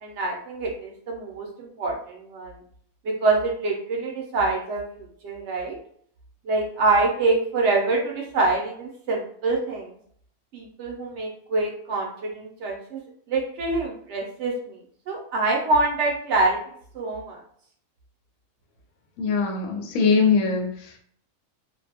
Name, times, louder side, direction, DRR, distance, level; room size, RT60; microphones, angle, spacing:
voice 1, 0.0-2.6 3.0-5.8 6.5-9.9 10.5-13.0 13.3-14.8 15.1-16.6 16.9-17.4, right 3 dB, 65° right, 0 dB, 0.8 m, -25 dB
voice 2, 19.2-20.9, left 5 dB, 80° left, 2 dB, 1.0 m, -22 dB
2.5 x 2.2 x 2.8 m, 0.62 s
omnidirectional pair, 1.4 m